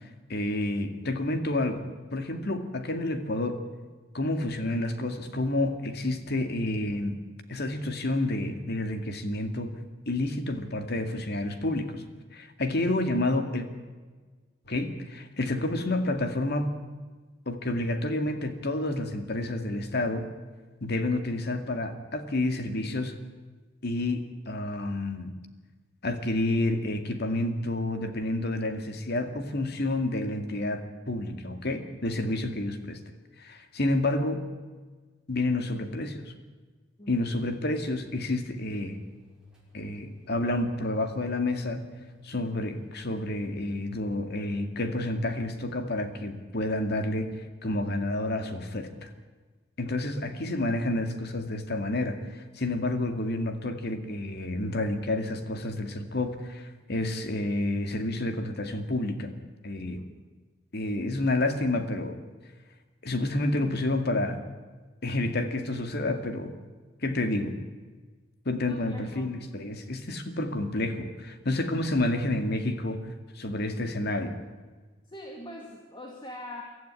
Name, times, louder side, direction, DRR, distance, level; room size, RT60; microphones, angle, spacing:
voice 1, 0.3-1.8 2.1-3.6 4.1-7.2 7.5-9.8 10.1-12.0 12.3-13.7 14.7-16.7 17.5-20.3 20.8-23.2 23.8-25.3 26.0-33.0 33.4-34.4 35.3-36.3 37.1-39.0 39.7-41.8 42.2-49.1 49.8-59.3 59.6-60.0 60.7-62.2 63.0-64.4 65.0-66.5 67.0-67.6 68.5-73.0 73.3-74.4, left 2 dB, 60° left, 7 dB, 2.2 m, -29 dB
voice 2, 32.1-32.4 37.0-37.2 59.8-60.1 68.7-69.4 75.1-76.6, left 1 dB, 25° left, 0 dB, 2.4 m, -43 dB
sound 1, 37.3-43.8, left 4 dB, 5° right, 6.2 m, -58 dB
23.5 x 14.0 x 9.7 m, 1.4 s
head